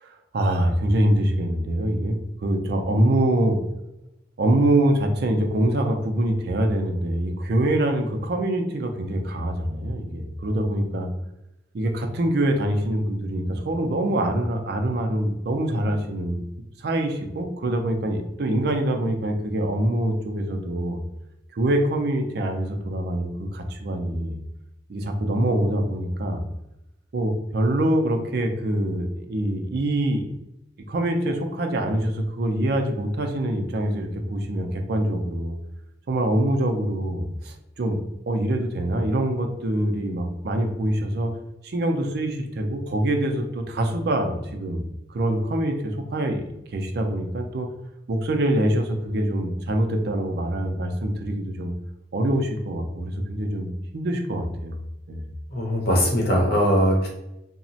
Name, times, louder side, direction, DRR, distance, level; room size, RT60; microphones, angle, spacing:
voice 1, 0.0-3.6 4.4-11.1 11.7-16.4 16.8-21.0 21.6-24.4 24.9-26.4 27.1-30.2 30.9-35.6 36.1-38.0 38.3-41.3 41.6-44.8 45.1-46.4 46.7-47.7 48.1-51.7 52.1-54.8 55.1-55.2, right 1 dB, 60° right, 4 dB, 0.4 m, -24 dB
voice 2, 55.5-57.1, equal, 55° left, -1 dB, 0.7 m, -20 dB
2.9 x 2.0 x 2.7 m, 0.88 s
head